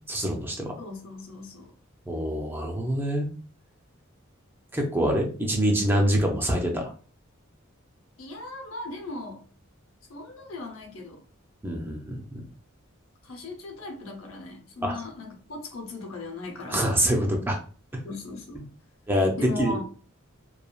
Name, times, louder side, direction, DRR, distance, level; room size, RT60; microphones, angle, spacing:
voice 1, 0.1-0.7 2.1-3.3 4.7-6.9 11.6-12.5 14.8-15.0 16.7-17.6 19.1-19.8, equal, 10° right, 1 dB, 0.4 m, -25 dB
voice 2, 0.8-1.7 8.2-9.4 10.1-11.2 13.2-17.0 18.0-18.6 19.4-19.8, left 2 dB, 70° left, 2 dB, 0.8 m, -38 dB
3.0 x 2.2 x 2.3 m, 0.40 s
head